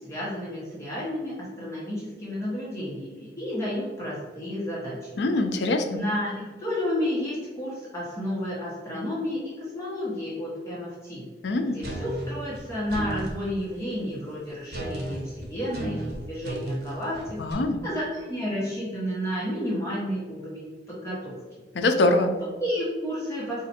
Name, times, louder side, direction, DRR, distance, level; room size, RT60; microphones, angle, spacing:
voice 1, 0.0-5.2 5.9-11.2 11.6-17.5 17.8-21.3 22.4-23.7, equal, 15° left, -8 dB, 1.1 m, -31 dB
voice 2, 5.2-6.0 11.4-11.8 17.4-17.8 21.8-22.3, left 2 dB, 75° left, 7 dB, 0.5 m, -23 dB
sound 1, 11.8-13.4 14.7-17.5, right 1 dB, 65° right, 0.9 m, -34 dB
4.1 x 2.5 x 4.2 m, 1.4 s
head